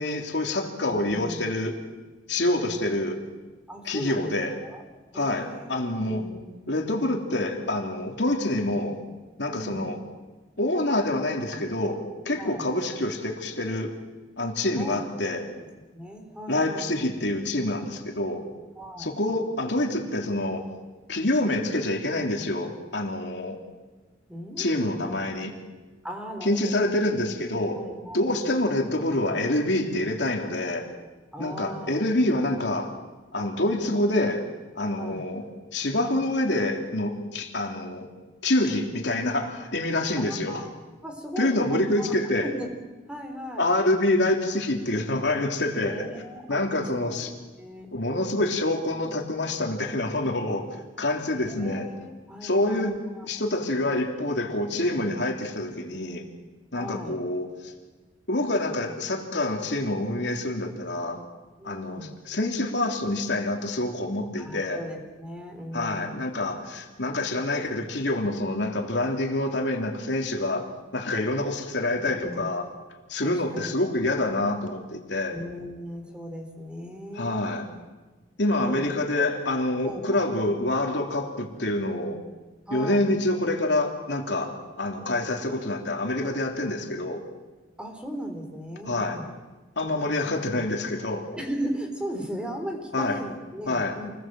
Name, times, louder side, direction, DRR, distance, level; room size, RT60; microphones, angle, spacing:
voice 1, 0.0-1.8 2.3-3.2 3.8-4.5 5.1-6.2 6.7-9.0 9.4-10.0 10.6-13.9 14.4-15.4 16.5-18.4 19.0-20.7 21.1-23.6 24.6-25.5 26.4-27.8 28.1-30.9 31.4-32.9 33.3-34.4 34.7-35.4 35.7-38.1 38.4-40.6 41.4-42.5 43.6-46.0 46.5-47.3 47.9-50.7 51.0-51.9 52.4-53.0 53.3-56.2 56.7-57.7 58.3-61.2 61.6-64.8 65.7-70.7 70.9-72.7 73.1-75.4 77.1-77.7 78.4-82.2 82.7-87.2 88.8-89.2 89.8-91.3 92.9-93.2 93.7-94.0, left 1 dB, 75° left, 2 dB, 3.3 m, -26 dB
voice 2, 0.9-1.5 3.7-4.8 5.1-5.8 6.1-6.9 9.5-9.9 12.3-12.7 14.8-15.3 15.9-17.0 18.8-19.2 24.3-24.7 25.0-25.2 26.0-27.0 27.8-28.3 31.3-31.9 33.7-34.0 35.0-35.2 40.2-40.7 41.0-42.1 42.4-42.7 43.1-43.7 45.8-47.2 47.6-47.9 48.9-49.2 51.4-53.3 56.7-57.2 61.6-62.2 64.4-66.2 72.0-72.5 73.2-73.7 75.3-77.5 78.7-78.9 79.1-79.4 79.8-80.3 82.7-83.1 87.8-89.3 91.3-94.1, equal, 5° right, 4 dB, 3.8 m, -37 dB
29.0 x 20.0 x 7.7 m, 1.2 s
head